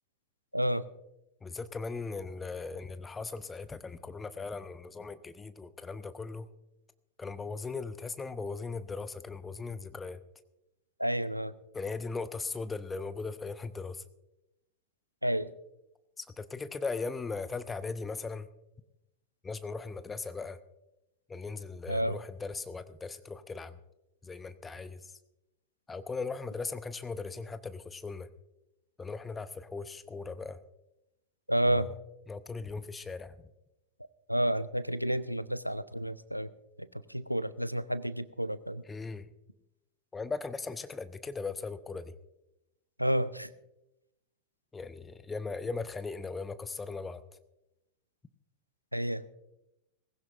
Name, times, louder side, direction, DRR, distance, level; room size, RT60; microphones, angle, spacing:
voice 1, 0.5-0.8 11.0-11.5 15.2-15.5 21.9-22.2 31.5-31.9 34.3-36.5 36.8-38.8 43.0-43.5 48.9-49.2, equal, 90° right, 16 dB, 0.5 m, -30 dB
voice 2, 1.4-6.5 7.2-10.2 11.7-14.0 16.2-18.5 19.4-20.6 21.3-23.8 24.2-25.0 25.9-28.3 29.0-30.6 31.6-31.9 32.3-33.3 38.9-39.2 40.1-42.1 44.7-47.2, left 4 dB, 15° left, 13 dB, 0.8 m, -38 dB
19.0 x 16.0 x 2.6 m, 0.91 s
figure-of-eight pair, 90°, 0 cm